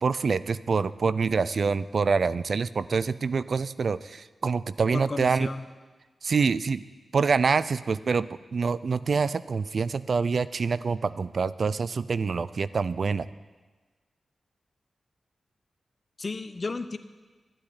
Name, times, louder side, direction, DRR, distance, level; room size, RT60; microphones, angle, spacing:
voice 1, 0.0-5.5 6.2-6.8 7.1-13.3, right 5 dB, 65° right, 16 dB, 0.5 m, -26 dB
voice 2, 4.9-5.6 16.2-17.0, left 3 dB, 45° left, 11 dB, 0.9 m, -33 dB
12.5 x 8.8 x 9.8 m, 1.3 s
cardioid pair, 65°, 0 cm